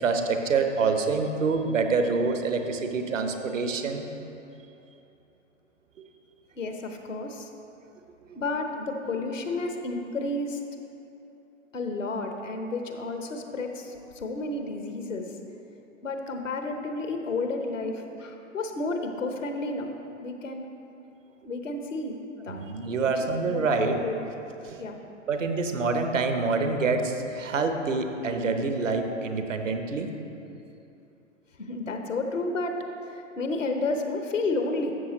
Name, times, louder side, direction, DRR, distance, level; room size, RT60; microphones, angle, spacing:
voice 1, 0.0-4.1 22.5-24.0 24.6-24.8 25.3-30.1, right 4 dB, 75° right, 6 dB, 0.9 m, -26 dB
voice 2, 6.6-7.5 8.3-10.6 11.7-15.3 16.0-19.9 20.2-20.7 21.4-22.2 22.4-22.6 23.0-23.1 23.5-24.1 24.8-25.0 31.6-32.8 33.1-34.9, left 3 dB, 80° left, 5 dB, 1.0 m, -31 dB
12.5 x 7.2 x 3.1 m, 2.9 s
figure-of-eight pair, 105°, 38 cm